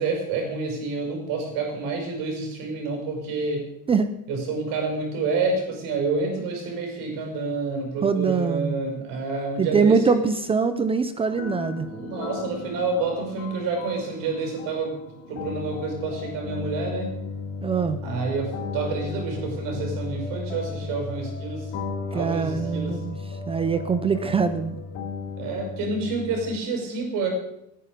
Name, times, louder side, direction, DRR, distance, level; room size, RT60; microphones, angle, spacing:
voice 1, 0.0-3.7 4.3-10.2 11.8-15.0 15.3-17.2 18.0-21.7 22.1-23.0 25.4-27.3, right 4 dB, 60° right, 2 dB, 6.0 m, -28 dB
voice 2, 8.0-8.8 9.6-11.9 17.6-18.0 22.1-23.2 23.5-24.8, right 5 dB, 15° right, 10 dB, 0.5 m, -23 dB
sound 1, 11.2-26.6, left 4 dB, 55° left, 2.4 m, -35 dB
19.5 x 10.0 x 5.2 m, 0.81 s
cardioid pair, 180°, 37 cm